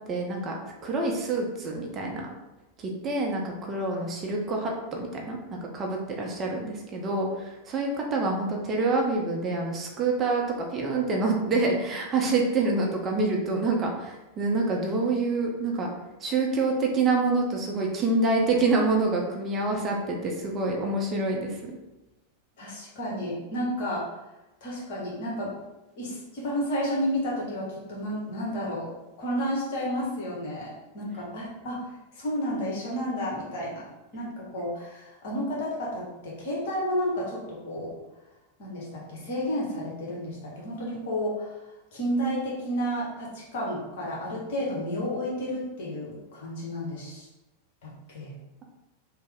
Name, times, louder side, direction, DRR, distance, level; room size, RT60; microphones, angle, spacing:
voice 1, 0.1-0.6 0.8-2.3 2.8-15.9 16.2-21.8, right 3 dB, 25° right, 0 dB, 0.5 m, -27 dB
voice 2, 22.6-24.2 24.6-25.6 26.0-33.9 34.1-37.9 38.6-47.3 47.8-48.4, equal, 50° left, -5 dB, 1.1 m, -31 dB
3.0 x 2.0 x 3.4 m, 1.0 s
figure-of-eight pair, 90°, 0 cm